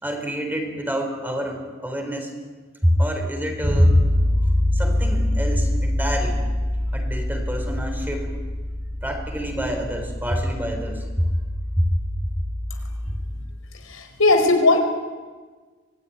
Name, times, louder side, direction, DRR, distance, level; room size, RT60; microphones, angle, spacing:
voice 1, 0.0-2.3 2.8-4.0 4.3-4.4 4.7-6.4 6.9-8.3 9.0-11.3 11.8-11.9, equal, 10° right, 3 dB, 4.5 m, -25 dB
Bass guitar, 3.6-13.5, left 1 dB, 30° right, 4.7 m, -25 dB
voice 2, 13.8-14.8, left 2 dB, 90° left, 5 dB, 4.7 m, -18 dB
25.0 x 20.0 x 9.9 m, 1.4 s
head